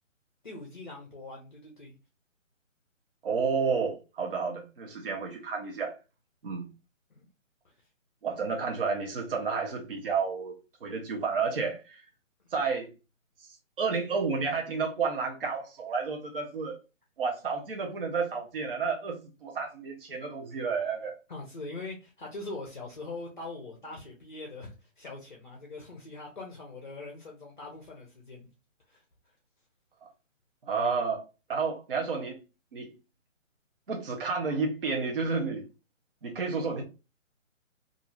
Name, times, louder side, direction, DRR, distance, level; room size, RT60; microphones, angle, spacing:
voice 1, 0.4-1.9 7.1-7.3 7.6-7.7 21.3-28.5 28.9-29.0, left 2 dB, 40° left, 0.6 m, -42 dB
voice 2, 3.2-6.0 6.4-6.6 8.2-12.0 12.5-12.9 13.8-16.8 17.2-21.2 30.6-31.2 31.5-32.4 32.7-32.9 33.9-35.6 36.2-36.8, right 5 dB, 45° right, 0.6 m, -31 dB
2.5 x 2.3 x 3.0 m
hypercardioid pair, 165°, 40 cm